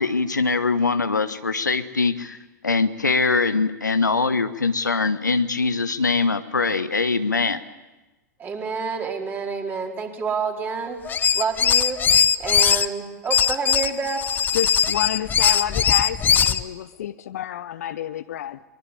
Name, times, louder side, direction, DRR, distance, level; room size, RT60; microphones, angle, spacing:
voice 1, 0.0-2.4 2.6-7.6, left 4 dB, 85° left, 1.3 m, -22 dB
voice 2, 8.4-12.0 12.4-14.2, right 5 dB, 20° right, 4.3 m, -28 dB
sound 1, 11.1-12.9 13.3-16.6, left 8 dB, 20° left, 0.8 m, -20 dB
voice 3, 14.5-18.6, left 11 dB, 60° left, 0.8 m, -29 dB
23.5 x 23.0 x 8.5 m
figure-of-eight pair, 100°, 9 cm